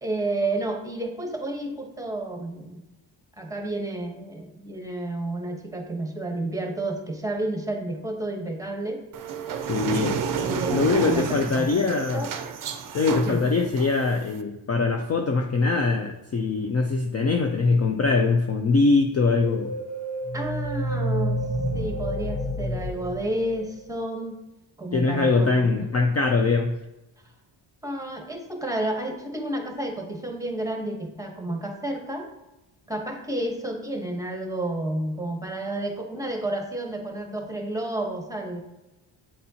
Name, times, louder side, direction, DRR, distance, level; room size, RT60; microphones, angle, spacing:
voice 1, 0.0-2.8 3.4-9.0 10.4-12.3 13.2-13.4 20.3-21.4 21.7-24.4 24.8-25.9 27.8-32.3 32.9-38.6, right 1 dB, 5° right, 2 dB, 1.0 m, -31 dB
sound 1, 9.1-14.4, right 6 dB, 40° right, 0.5 m, -30 dB
voice 2, 9.7-10.2 10.7-12.3 12.9-19.7 24.9-26.8, left 4 dB, 30° left, 4 dB, 0.5 m, -22 dB
sound 2, 19.4-24.0, equal, 90° left, 1.9 m, -29 dB
8.7 x 4.1 x 2.8 m, 0.97 s
cardioid pair, 100°, 50 cm